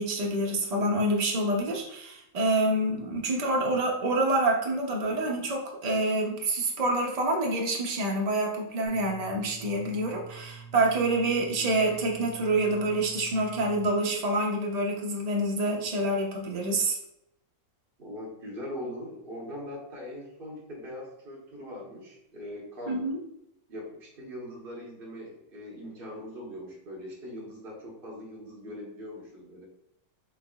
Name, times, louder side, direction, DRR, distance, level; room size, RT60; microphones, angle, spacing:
voice 1, 0.0-17.0 22.9-23.2, right 2 dB, 65° right, 0 dB, 0.4 m, -27 dB
sound 1, 8.9-13.9, right 6 dB, 60° left, 1.7 m, -47 dB
voice 2, 18.0-23.0 23.7-29.6, left 1 dB, 35° right, -3 dB, 1.3 m, -41 dB
6.0 x 3.4 x 2.4 m, 0.79 s
omnidirectional pair, 1.9 m